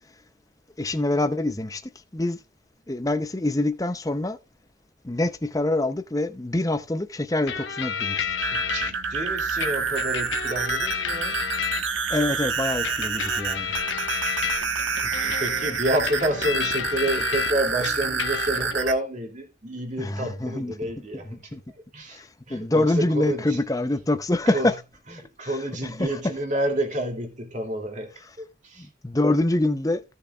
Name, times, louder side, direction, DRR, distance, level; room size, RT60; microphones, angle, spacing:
voice 1, 0.8-2.4 2.9-4.4 5.0-8.3 12.1-13.8 20.0-20.7 21.2-21.6 22.1-24.7 25.4-26.2 28.8-30.0, left 2 dB, 15° left, 0.6 m, -25 dB
sound 1, 7.5-8.9 9.6-12.2 12.8-17.5 17.8-18.7, left 8 dB, 75° left, 1.1 m, -31 dB
sound 2, 8.3-18.9, right 6 dB, 75° right, 1.2 m, -28 dB
voice 2, 8.5-11.4 15.0-21.5 21.9-22.2 22.5-23.6 24.5-24.7 25.1-28.9, right 1 dB, 40° right, 2.5 m, -29 dB
16.0 x 6.9 x 2.4 m
head